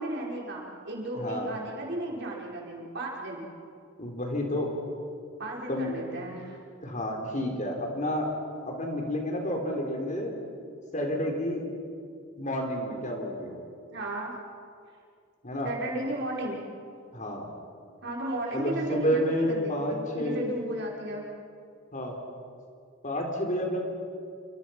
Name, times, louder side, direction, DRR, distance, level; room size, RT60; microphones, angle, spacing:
voice 1, 0.0-3.5 5.4-6.6 13.9-14.4 15.6-16.6 18.0-21.3, right 1 dB, 55° right, -2 dB, 5.3 m, -34 dB
voice 2, 1.1-1.5 4.0-4.7 5.7-5.9 6.8-8.3 8.6-10.3 10.9-11.6 12.4-13.6 15.4-15.7 17.1-17.5 18.5-20.5 21.9-22.1 23.0-23.8, equal, 40° left, 1 dB, 4.2 m, -30 dB
28.5 x 26.0 x 6.0 m, 2.3 s
head